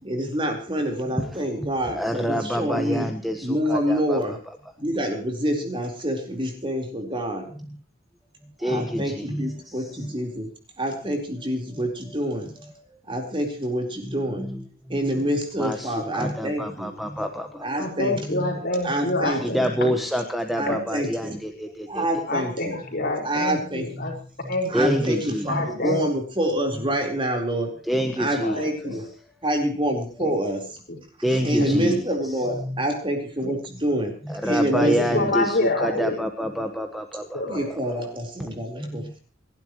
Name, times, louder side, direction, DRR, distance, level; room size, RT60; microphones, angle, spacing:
voice 1, 0.0-3.1 3.4-4.4 4.8-7.5 8.6-10.5 10.8-12.5 13.1-14.5 14.9-16.9 17.6-18.4 18.8-19.7 20.6-21.4 21.9-22.8 23.2-23.9 24.7-27.7 28.2-29.1 29.4-30.8 31.3-34.1 34.4-35.4 37.5-39.2, right 1 dB, 25° right, 2 dB, 4.2 m, -27 dB
voice 2, 1.9-4.2 8.6-9.5 15.6-17.7 19.4-22.0 24.7-25.5 27.9-28.6 31.2-32.0 34.4-37.4 38.8-39.1, equal, ahead, 5 dB, 1.3 m, -27 dB
voice 3, 17.8-20.0 20.6-20.8 22.3-24.1 24.5-24.7 25.5-26.0 28.4-29.0 30.2-30.3 33.4-33.5 34.7-36.2 37.3-37.7, left 2 dB, 50° left, 1 dB, 5.3 m, -27 dB
29.0 x 12.0 x 3.1 m, 0.38 s
head